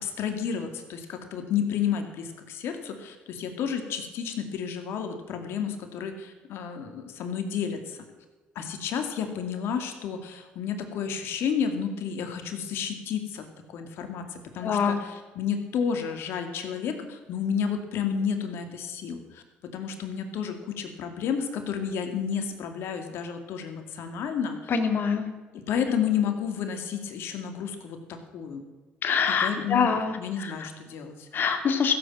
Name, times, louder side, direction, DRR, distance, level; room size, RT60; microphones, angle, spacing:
voice 1, 0.0-8.0 8.6-13.4 13.7-19.4 19.7-24.7 25.7-28.6 29.4-29.9 30.2-31.3, left 7 dB, 70° left, 6 dB, 2.3 m, -31 dB
voice 2, 14.6-15.1 24.7-25.3 29.0-30.7 31.3-31.9, left 6 dB, 55° left, 7 dB, 2.3 m, -25 dB
15.0 x 8.3 x 7.4 m, 1.3 s
supercardioid pair, 70°, 4 cm